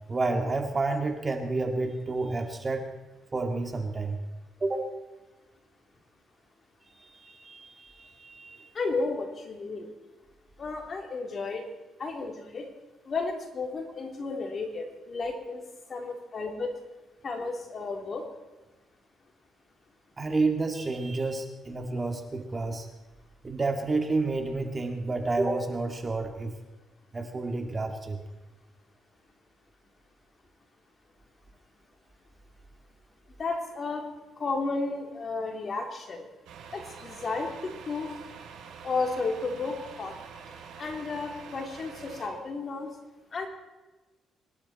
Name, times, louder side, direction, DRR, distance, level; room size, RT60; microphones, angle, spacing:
voice 1, 0.1-2.9 3.3-4.2 4.6-4.9 7.0-8.7 20.2-22.9 23.4-26.5 27.1-28.2, right 3 dB, 30° right, 5 dB, 2.4 m, -30 dB
voice 2, 8.7-9.9 10.6-11.6 12.0-12.7 13.1-15.6 15.9-16.7 17.2-18.2 33.4-34.1 34.4-36.3 36.7-38.1 38.8-40.2 40.8-42.9 43.3-43.5, left 3 dB, 45° left, 3 dB, 3.5 m, -33 dB
Truck, 36.5-42.3, right 6 dB, 90° right, 3.4 m, -46 dB
25.0 x 12.0 x 4.4 m, 1.2 s
cardioid pair, 90°, 0 cm